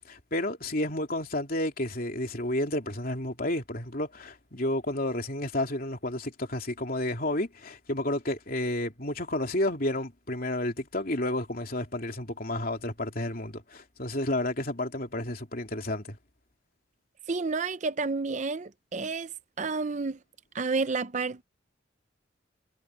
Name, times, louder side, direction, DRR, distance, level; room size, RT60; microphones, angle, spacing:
voice 1, 0.1-16.2, left 1 dB, 45° left, 3.1 m, -31 dB
voice 2, 17.3-19.3 19.6-20.2 20.5-21.4, right 4 dB, 40° right, 0.6 m, -30 dB
head